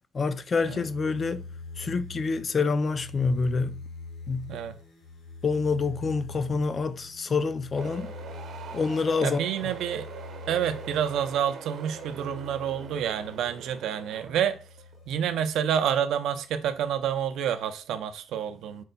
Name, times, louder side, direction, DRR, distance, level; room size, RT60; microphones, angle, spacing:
voice 1, 0.1-1.4 1.8-3.8 4.3-4.5 5.4-8.1 8.7-9.7, left 4 dB, 30° left, 0.3 m, -27 dB
sound 1, 0.6-15.8 16.4-17.4, left 3 dB, 75° left, 1.3 m, -45 dB
sound 2, 7.8-16.4, right 6 dB, 60° right, 0.8 m, -42 dB
voice 2, 9.2-10.1 10.5-14.6 15.1-18.8, right 9 dB, 75° right, 0.5 m, -28 dB
4.4 x 2.2 x 3.9 m
cardioid pair, 150°, 0 cm